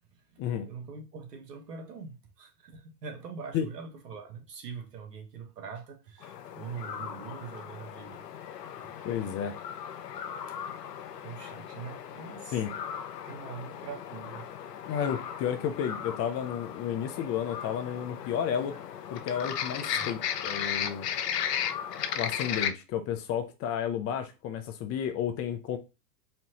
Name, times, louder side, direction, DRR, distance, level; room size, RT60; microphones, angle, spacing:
voice 1, 0.1-8.2 9.1-9.5 10.5-10.6 11.2-12.6 13.2-14.5 19.9-20.1, right 5 dB, 90° right, 1.4 m, -43 dB
sound 1, 6.2-22.7, left 9 dB, 85° left, 0.8 m, -36 dB
voice 2, 9.0-9.5 12.5-12.7 14.9-18.8 19.1-21.1 22.1-25.8, left 8 dB, 30° left, 0.7 m, -32 dB
4.3 x 2.9 x 2.9 m
hypercardioid pair, 115°, 47 cm